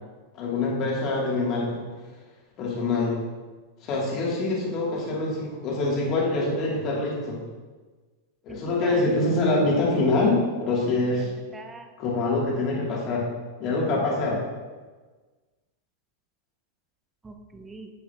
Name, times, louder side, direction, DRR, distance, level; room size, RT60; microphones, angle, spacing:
voice 1, 0.4-1.8 2.6-3.2 3.8-7.4 8.4-11.3 12.0-13.2 13.6-14.4, left 2 dB, 35° left, -4 dB, 3.0 m, -25 dB
voice 2, 8.5-9.6 11.2-11.9 17.2-17.9, right 3 dB, 15° right, 5 dB, 1.0 m, -42 dB
10.0 x 8.9 x 3.0 m, 1.4 s
figure-of-eight pair, 90°, 0 cm